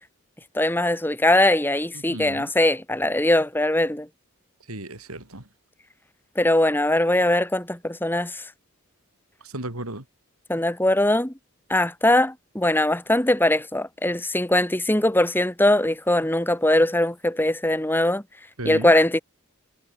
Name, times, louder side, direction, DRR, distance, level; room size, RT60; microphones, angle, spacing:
voice 1, 0.5-4.1 6.4-8.4 10.5-11.3 11.7-18.2 18.7-19.2, left 1 dB, 10° left, 1.7 m, -21 dB
voice 2, 1.9-2.5 4.7-5.4 9.4-10.0 18.6-18.9, right 1 dB, 80° right, 5.6 m, -34 dB
head